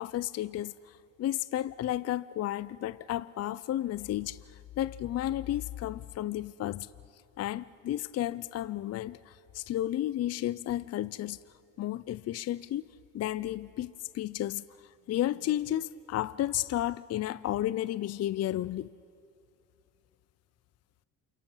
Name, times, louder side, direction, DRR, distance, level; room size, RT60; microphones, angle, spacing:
voice 1, 0.0-4.4 4.8-6.9 7.4-11.4 11.8-12.8 13.1-14.6 15.1-18.9, left 13 dB, 45° left, 0.5 m, -32 dB
28.5 x 28.0 x 5.7 m
supercardioid pair, 80°, 34 cm